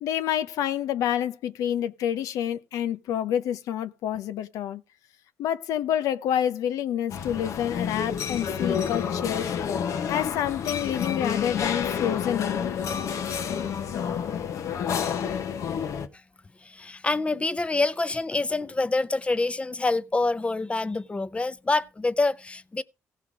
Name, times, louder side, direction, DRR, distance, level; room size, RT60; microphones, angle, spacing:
voice 1, 0.0-4.8 5.4-9.5 10.1-12.7, left 10 dB, 90° left, 0.8 m, -28 dB
sound 1, 7.1-16.1, left 7 dB, 70° left, 1.1 m, -29 dB
voice 2, 16.6-22.8, left 3 dB, 20° left, 0.7 m, -26 dB
16.5 x 5.7 x 4.8 m
cardioid pair, 95°, 6 cm